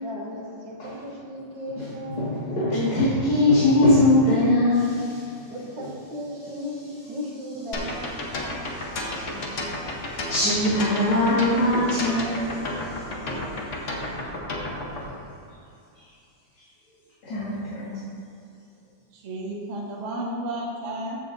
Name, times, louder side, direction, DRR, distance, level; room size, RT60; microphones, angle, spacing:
voice 1, 0.0-2.3 5.5-8.8, left 1 dB, 65° right, -3 dB, 1.8 m, -36 dB
voice 2, 1.8-5.2 8.3-13.0 17.2-17.9, left 1 dB, 70° left, -10 dB, 2.8 m, -23 dB
sound 1, 7.7-15.0, left 1 dB, 45° left, 1.1 m, -31 dB
voice 3, 19.1-21.2, right 1 dB, 40° right, -3 dB, 1.3 m, -32 dB
14.0 x 7.5 x 2.7 m, 2.6 s
omnidirectional pair, 2.3 m